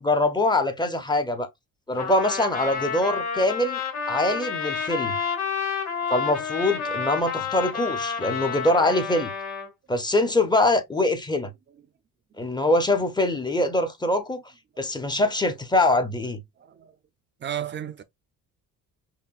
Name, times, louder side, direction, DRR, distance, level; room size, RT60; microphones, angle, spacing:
voice 1, 0.0-1.5 1.9-3.8 4.1-5.2 6.1-9.3 9.9-11.5 12.4-14.4 14.8-16.4, left 2 dB, 10° left, 0.6 m, -23 dB
Trumpet, 2.0-9.7, left 6 dB, 50° left, 2.1 m, -30 dB
voice 2, 6.0-6.4 7.1-7.5 11.7-11.9 16.6-17.0 17.4-18.0, right 10 dB, 30° right, 0.5 m, -36 dB
5.6 x 2.1 x 2.4 m
cardioid pair, 125°, 35 cm